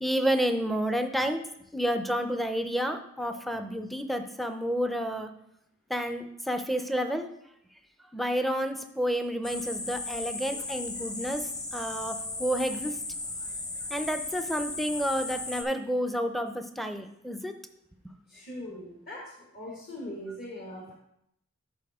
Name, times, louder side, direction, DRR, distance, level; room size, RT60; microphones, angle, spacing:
voice 1, 0.0-1.4 1.7-5.3 5.9-7.3 8.1-12.9 13.9-17.5, equal, ahead, 7 dB, 0.5 m, -30 dB
sound 1, 9.4-15.6, left 2 dB, 20° left, 0.9 m, -36 dB
voice 2, 18.3-19.2 19.5-20.9, left 1 dB, 50° left, -4 dB, 1.7 m, -41 dB
12.5 x 4.3 x 3.5 m, 0.78 s
head